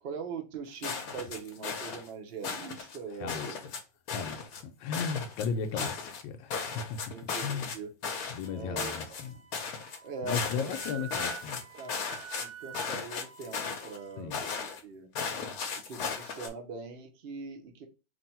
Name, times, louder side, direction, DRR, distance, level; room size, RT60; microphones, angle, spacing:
voice 1, 0.0-3.6 5.8-5.9 7.1-7.9 8.5-9.0 10.0-11.1 11.7-12.0 12.4-14.5 14.8-15.1 15.8-17.9, right 4 dB, 85° right, 0.5 m, -42 dB
sound 1, 0.8-2.1 2.4-3.0 3.3-3.8 4.1-4.6 4.9-6.2 6.5-7.8 8.0-8.5 8.8-9.3 9.5-10.0 10.3-12.5 12.7-14.0 14.3-14.8 15.2-16.5, left 5 dB, 60° left, 1.0 m, -36 dB
voice 2, 3.1-3.6 4.1-7.0 7.4-7.7 8.3-9.4 10.2-11.6 14.2-14.4, left 6 dB, 80° left, 1.3 m, -35 dB
Wind instrument woodwind instrument, 8.4-14.2, right 9 dB, 45° right, 0.9 m, -48 dB
3.3 x 2.6 x 4.2 m
omnidirectional pair, 2.1 m